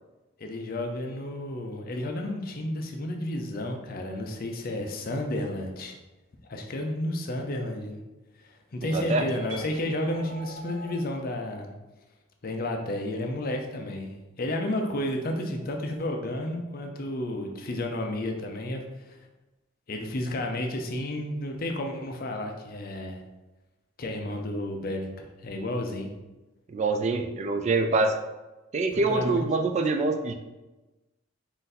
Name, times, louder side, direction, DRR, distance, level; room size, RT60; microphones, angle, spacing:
voice 1, 0.4-6.0 6.5-8.0 8.4-11.7 12.4-19.2 19.9-23.2 24.0-26.1 28.9-29.5, left 1 dB, 50° left, 3 dB, 0.6 m, -32 dB
voice 2, 8.8-9.3 26.7-28.1 28.7-30.3, right 3 dB, 35° right, 6 dB, 0.3 m, -25 dB
sound 1, 9.0-11.0, equal, 90° right, 1.2 m, -44 dB
4.0 x 2.6 x 4.0 m, 1.1 s
head